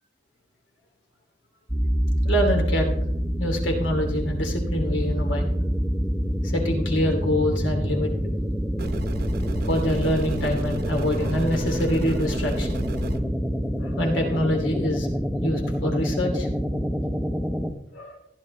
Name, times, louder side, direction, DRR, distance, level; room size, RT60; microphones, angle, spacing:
sound 1, 1.7-17.7, equal, ahead, 0.6 m, -26 dB
voice 1, 2.2-3.0 3.4-5.5 6.4-8.1 9.6-12.8 13.1-13.2 13.8-15.1 15.4-16.5 17.9-18.2, left 1 dB, 90° left, 2 dB, 2.7 m, -26 dB
sound 2, 8.8-13.2, right 2 dB, 55° right, 0.9 m, -32 dB
15.5 x 10.5 x 3.2 m, 0.74 s
head